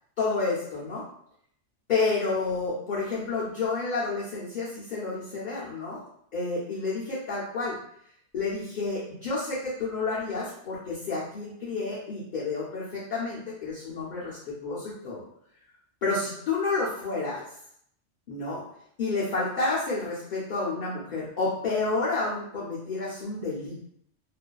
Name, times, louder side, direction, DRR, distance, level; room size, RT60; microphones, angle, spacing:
voice 1, 0.2-1.0 1.9-6.0 6.3-7.8 8.3-15.2 16.0-17.4 18.3-18.6 19.0-23.8, left 3 dB, 55° left, -7 dB, 0.6 m, -30 dB
2.5 x 2.3 x 2.2 m, 0.68 s
omnidirectional pair, 1.2 m